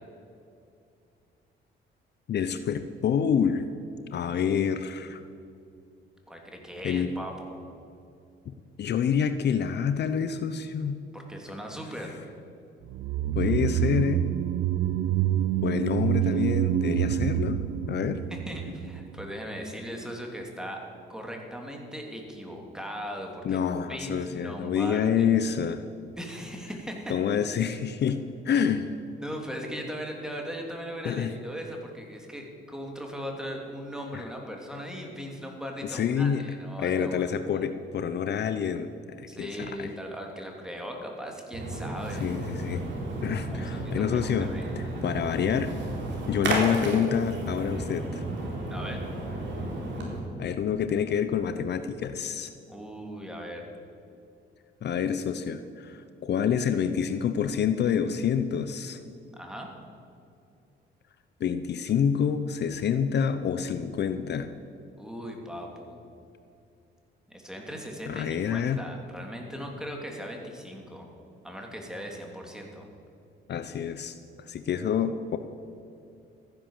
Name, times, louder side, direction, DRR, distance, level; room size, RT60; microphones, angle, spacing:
voice 1, 2.3-3.7 4.1-5.2 6.8-7.1 8.5-11.0 13.3-14.3 15.6-18.2 23.4-25.9 27.1-28.8 31.0-31.3 34.1-34.2 35.8-36.5 36.8-38.9 39.2-39.9 42.2-42.8 43.2-44.5 45.0-45.8 46.3-48.2 50.4-52.5 54.8-59.0 61.4-64.5 68.1-68.8 73.5-74.2 74.5-75.4, left 7 dB, 60° left, 10 dB, 0.7 m, -27 dB
voice 2, 6.3-7.6 11.1-12.2 18.3-23.6 23.9-25.3 26.2-27.2 28.5-28.6 29.2-37.3 37.5-37.6 39.3-42.3 43.5-44.6 48.7-49.0 52.7-53.7 59.2-59.7 65.0-66.0 67.3-71.1 71.4-72.9, equal, 5° right, 1 dB, 2.9 m, -38 dB
sound 1, 12.9-19.3 19.6-19.7, right 11 dB, 90° right, 0.5 m, -27 dB
Splash splatter, 41.5-50.2, right 2 dB, 65° right, 4.0 m, -33 dB
14.5 x 10.5 x 7.3 m, 2.5 s
cardioid pair, 90°, 20 cm